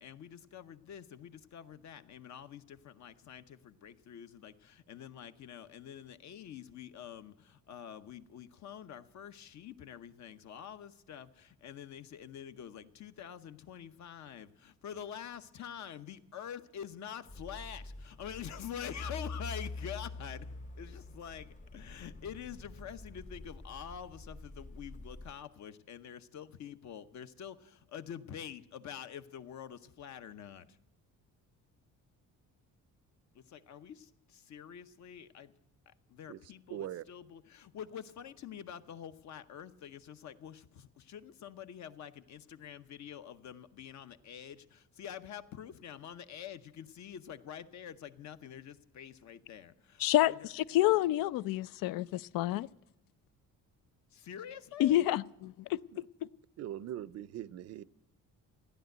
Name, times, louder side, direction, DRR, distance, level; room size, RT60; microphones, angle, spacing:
voice 1, 0.0-20.5 20.8-30.8 33.3-35.5 35.9-50.3 54.1-55.0, left 9 dB, 60° left, 0.9 m, -46 dB
sound 1, 17.3-25.3, left 3 dB, 25° left, 0.7 m, -45 dB
voice 2, 36.7-37.0 55.9-56.0 56.6-57.8, right 12 dB, 50° right, 0.5 m, -41 dB
voice 3, 50.0-52.7 54.8-56.0, left 14 dB, 80° left, 0.5 m, -29 dB
15.0 x 10.5 x 7.9 m
cardioid pair, 135°, 33 cm